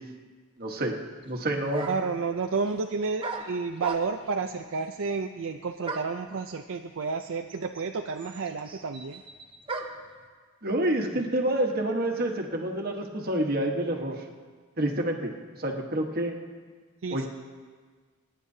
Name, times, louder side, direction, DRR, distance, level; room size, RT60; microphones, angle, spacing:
voice 1, 0.6-0.9 1.3-1.9 10.6-14.2 14.8-15.3 15.6-16.3 17.1-17.3, right 1 dB, 45° right, 2 dB, 1.3 m, -28 dB
sound 1, 1.2-1.3 1.7-2.2 3.2-4.4 5.8-6.3 7.2-7.3 7.5-10.1, right 3 dB, 25° right, 0.9 m, -37 dB
voice 2, 1.9-9.2 17.0-17.3, right 4 dB, 65° right, 5 dB, 0.5 m, -31 dB
27.0 x 10.0 x 2.8 m, 1.5 s
head